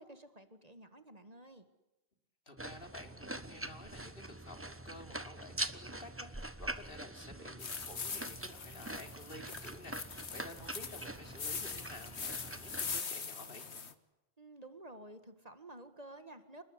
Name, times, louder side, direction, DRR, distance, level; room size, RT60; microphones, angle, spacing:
voice 1, 0.0-1.6 14.4-16.6, right 1 dB, 35° right, 10 dB, 2.0 m, -52 dB
voice 2, 2.5-13.7, left 1 dB, 55° left, 6 dB, 3.7 m, -52 dB
sound 1, 2.6-13.0, right 1 dB, 10° right, 1.2 m, -44 dB
sound 2, 7.6-13.9, left 5 dB, 85° left, 1.8 m, -42 dB
29.0 x 20.0 x 9.8 m, 1.0 s
omnidirectional pair, 1.1 m